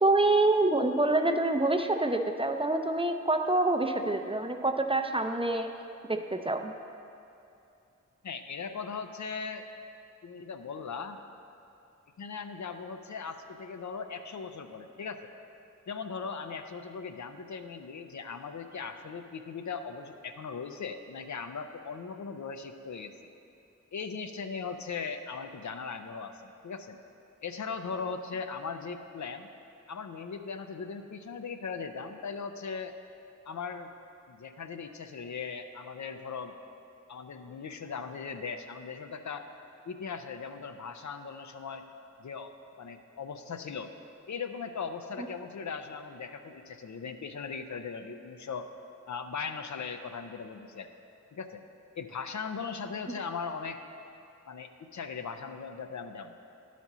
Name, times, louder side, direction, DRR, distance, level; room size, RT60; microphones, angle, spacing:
voice 1, 0.0-5.7 6.1-6.7, right 2 dB, 20° right, 6 dB, 0.5 m, -26 dB
voice 2, 8.2-9.7 10.2-11.2 12.2-15.3 15.9-23.1 23.9-27.0 27.4-29.5 29.9-33.0 33.5-33.9 34.3-36.5 37.1-39.5 39.9-41.8 42.2-43.9 44.3-48.7 49.1-50.9 51.3-51.6 51.9-53.8 54.5-56.3, left 5 dB, 70° left, 7 dB, 0.5 m, -39 dB
10.0 x 4.2 x 6.0 m, 2.6 s
cardioid pair, 45°, 31 cm